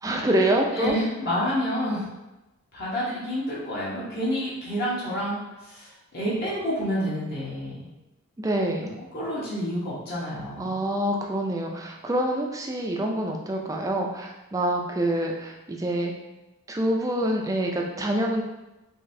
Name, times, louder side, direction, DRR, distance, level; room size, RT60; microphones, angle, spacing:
voice 1, 0.0-1.0 8.4-8.9 10.6-16.1 16.7-18.4, right 1 dB, 15° right, 1 dB, 0.3 m, -26 dB
voice 2, 0.7-2.0 2.7-7.8 9.1-10.8, equal, 45° left, -8 dB, 1.0 m, -29 dB
3.9 x 2.7 x 2.6 m, 1.0 s
head